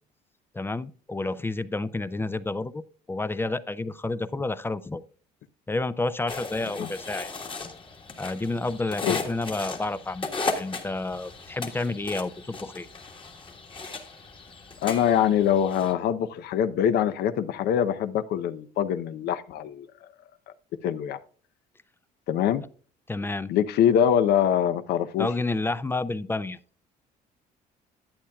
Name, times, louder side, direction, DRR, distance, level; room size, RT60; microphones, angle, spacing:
voice 1, 0.5-5.0 5.7-7.3 8.2-12.9 23.1-23.5 25.2-26.6, left 2 dB, 15° left, 0.4 m, -30 dB
sound 1, 6.3-15.9, left 3 dB, 30° left, 1.5 m, -36 dB
voice 2, 14.8-19.9 20.8-21.2 22.3-22.6 23.5-25.3, left 9 dB, 75° left, 0.8 m, -24 dB
11.5 x 8.7 x 2.3 m
cardioid pair, 110°, 17 cm